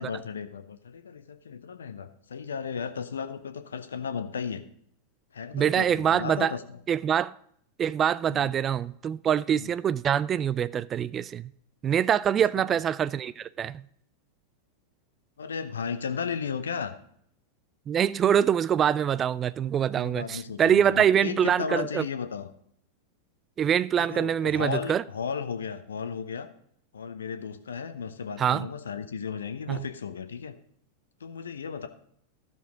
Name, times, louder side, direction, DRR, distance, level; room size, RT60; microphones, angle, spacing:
voice 1, 0.0-4.6 5.3-6.6 8.3-8.5 9.5-9.7 15.4-16.9 19.9-22.5 24.0-26.5 26.9-30.5 31.2-31.9, left 6 dB, 70° left, 0.7 m, -35 dB
voice 2, 5.5-6.5 6.9-7.3 7.8-11.5 11.8-13.8 17.9-22.0 23.6-25.0 28.4-28.7 29.7-29.9, right 9 dB, 25° right, 0.3 m, -24 dB
13.0 x 6.9 x 3.7 m
figure-of-eight pair, 90°, 0 cm